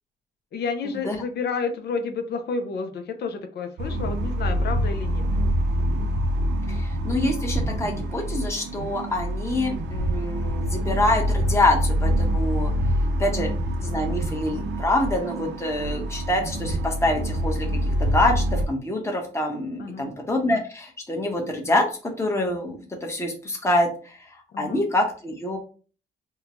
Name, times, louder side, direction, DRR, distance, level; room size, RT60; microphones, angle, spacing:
voice 1, 0.5-5.3 13.3-13.6 19.8-20.1 24.5-24.8, left 4 dB, 55° left, 6 dB, 0.6 m, -30 dB
sound 1, 3.8-18.7, equal, 65° right, 0.6 m, -26 dB
voice 2, 6.7-12.7 13.2-13.5 13.8-17.7 18.0-24.2 24.6-25.6, left 1 dB, 15° left, 1 dB, 1.0 m, -26 dB
3.6 x 2.2 x 2.9 m, 0.39 s
cardioid pair, 90°, 20 cm